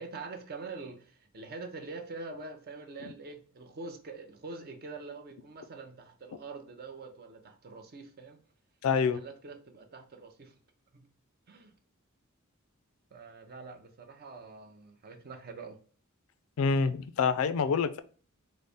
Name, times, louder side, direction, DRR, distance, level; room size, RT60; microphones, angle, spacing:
voice 1, 0.0-8.4 8.9-10.5 10.9-11.1 11.5-11.7 13.1-15.8, right 3 dB, 45° right, 5 dB, 0.6 m, -45 dB
voice 2, 8.8-9.2 16.6-18.0, left 5 dB, 70° left, 12 dB, 0.3 m, -26 dB
4.0 x 2.0 x 3.4 m, 0.43 s
head